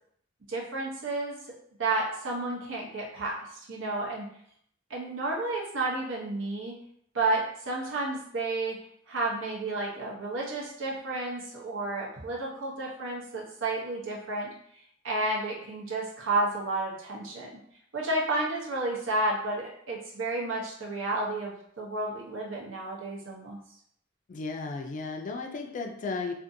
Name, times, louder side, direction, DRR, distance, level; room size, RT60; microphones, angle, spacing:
voice 1, 0.5-1.4 1.8-4.3 4.9-6.7 7.1-8.8 9.1-14.5 15.0-17.5 17.9-23.6, right 2 dB, 85° right, -2 dB, 0.7 m, -31 dB
voice 2, 24.3-26.3, left 4 dB, 40° left, 3 dB, 0.3 m, -34 dB
2.6 x 2.5 x 2.6 m, 0.67 s
head